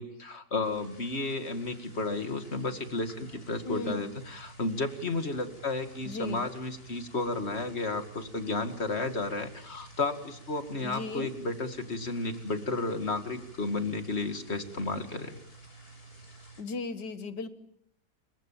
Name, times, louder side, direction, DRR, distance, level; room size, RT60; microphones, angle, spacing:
voice 1, 0.0-15.3, left 3 dB, 40° left, 8 dB, 2.4 m, -32 dB
sound 1, 0.6-16.6, right 2 dB, 60° left, 8.1 m, -51 dB
voice 2, 3.7-4.2 6.1-6.5 10.8-11.3 16.6-17.5, left 3 dB, 85° left, 10 dB, 2.3 m, -36 dB
29.5 x 24.0 x 7.4 m, 0.72 s
omnidirectional pair, 1.8 m